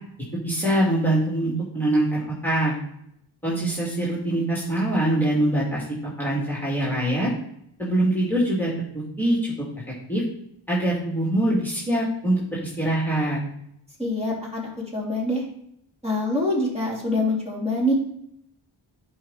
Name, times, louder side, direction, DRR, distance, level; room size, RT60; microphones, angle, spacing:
voice 1, 0.4-2.7 3.4-5.8 6.2-7.3 7.8-8.7 9.2-9.5 10.1-10.2 10.7-13.4, right 1 dB, 5° left, -6 dB, 2.8 m, -23 dB
voice 2, 14.0-15.4 16.0-17.9, left 1 dB, 10° right, -4 dB, 3.5 m, -25 dB
10.0 x 5.0 x 4.2 m, 0.73 s
cardioid pair, 60°, 49 cm